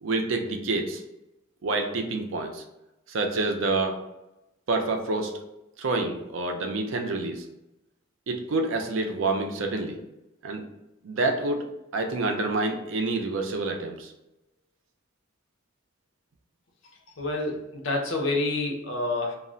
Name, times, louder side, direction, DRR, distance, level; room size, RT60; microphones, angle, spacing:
voice 1, 0.0-1.0 1.6-2.6 3.1-4.0 4.7-5.4 5.8-7.5 8.3-10.0 10.4-10.6 11.0-11.6 11.9-14.1, right 2 dB, 75° right, 4 dB, 0.4 m, -27 dB
voice 2, 17.2-19.3, left 2 dB, 75° left, 1 dB, 0.6 m, -28 dB
2.3 x 2.1 x 3.7 m, 0.92 s
head